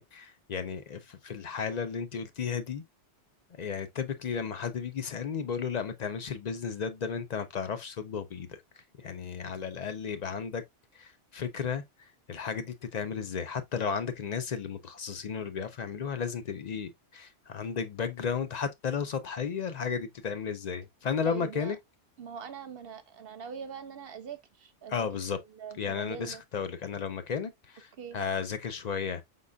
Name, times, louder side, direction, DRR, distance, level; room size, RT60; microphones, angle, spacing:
voice 1, 0.0-2.8 3.5-8.6 9.0-10.6 10.9-11.8 12.3-21.8 24.9-25.4 25.8-29.2, left 6 dB, 55° left, 0.5 m, -34 dB
voice 2, 21.2-21.8 22.2-25.1 25.3-26.4 28.0-28.2, right 7 dB, 60° right, 0.8 m, -42 dB
5.2 x 3.8 x 2.2 m
omnidirectional pair, 1.2 m